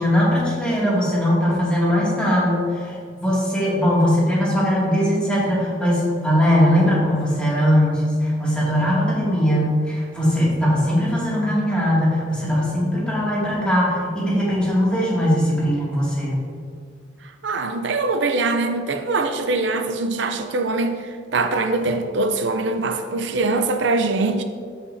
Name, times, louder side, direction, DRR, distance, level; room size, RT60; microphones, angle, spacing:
voice 1, 0.0-16.4, equal, 5° left, -7 dB, 2.2 m, -20 dB
voice 2, 17.4-24.4, right 3 dB, 80° right, 6 dB, 0.5 m, -23 dB
14.0 x 5.6 x 2.7 m, 2.1 s
head